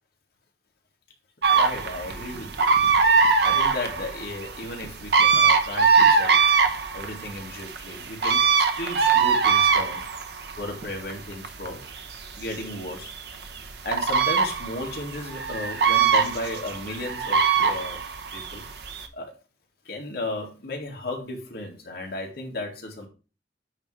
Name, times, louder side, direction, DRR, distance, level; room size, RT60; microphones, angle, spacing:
sound 1, 1.4-19.1, right 5 dB, 70° right, 0.8 m, -22 dB
voice 1, 1.5-2.8 3.4-6.4 6.7-10.0 10.6-11.8 12.3-13.1 13.8-18.0 18.3-18.7 19.1-19.4 19.8-23.1, left 2 dB, 65° left, 0 dB, 2.1 m, -35 dB
8.7 x 3.1 x 4.9 m, 0.34 s
head